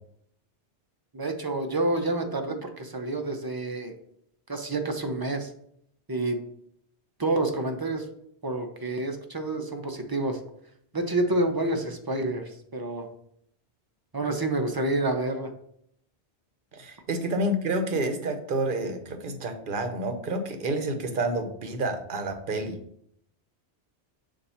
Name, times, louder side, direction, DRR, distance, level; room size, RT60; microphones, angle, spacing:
voice 1, 1.1-3.9 4.5-5.5 6.1-6.4 7.2-8.0 8.4-10.4 10.9-13.1 14.1-15.5, right 2 dB, 25° right, 5 dB, 0.6 m, -28 dB
voice 2, 16.7-22.8, right 1 dB, 50° right, 6 dB, 0.9 m, -29 dB
6.9 x 2.6 x 5.6 m, 0.70 s
omnidirectional pair, 1.1 m